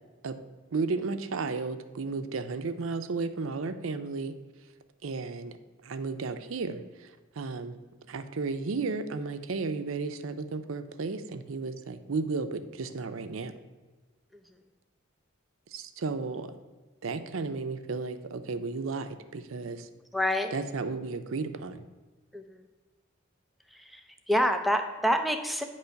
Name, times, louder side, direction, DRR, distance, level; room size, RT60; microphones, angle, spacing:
voice 1, 0.7-4.3 5.0-5.6 5.8-6.8 7.4-7.8 8.1-13.5 15.7-16.5 17.0-19.9 20.5-21.8, right 4 dB, 85° right, 9 dB, 0.5 m, -33 dB
voice 2, 20.1-20.5 22.3-22.6 23.7-25.6, equal, ahead, 5 dB, 0.4 m, -28 dB
9.2 x 3.1 x 5.7 m, 1.3 s
head